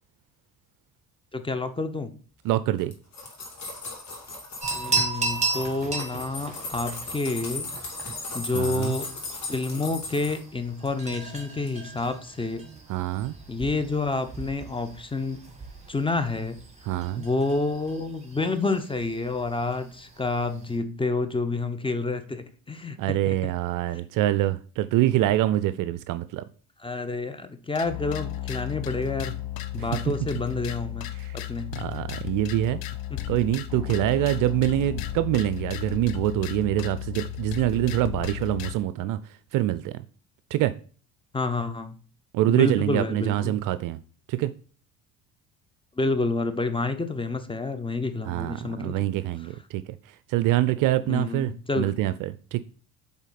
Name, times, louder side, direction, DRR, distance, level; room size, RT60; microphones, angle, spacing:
voice 1, 1.3-2.1 4.7-7.7 8.3-9.1 9.5-12.6 13.5-15.4 15.9-16.6 17.1-23.5 26.8-29.4 29.7-31.1 31.3-31.8 33.1-33.2 41.3-42.0 42.5-43.6 46.0-49.1 51.1-51.9, left 3 dB, 10° left, 9 dB, 0.8 m, -29 dB
voice 2, 2.4-2.9 8.5-9.0 12.9-13.3 16.9-17.2 23.0-26.4 29.8-29.9 31.2-31.4 31.8-32.8 33.3-39.2 39.5-40.0 40.5-40.7 42.3-44.0 44.3-44.5 48.3-50.0 50.3-52.6, right 14 dB, 50° right, 13 dB, 0.5 m, -25 dB
sound 1, 2.8-4.9 5.2-10.4 10.9-11.4 11.7-11.8, left 3 dB, 40° left, 2.4 m, -37 dB
sound 2, 4.6-20.8, right 3 dB, 15° right, 2.0 m, -36 dB
sound 3, 27.7-38.7, left 12 dB, 55° left, 0.8 m, -34 dB
8.1 x 3.6 x 4.0 m, 0.41 s
hypercardioid pair, 60°, 44 cm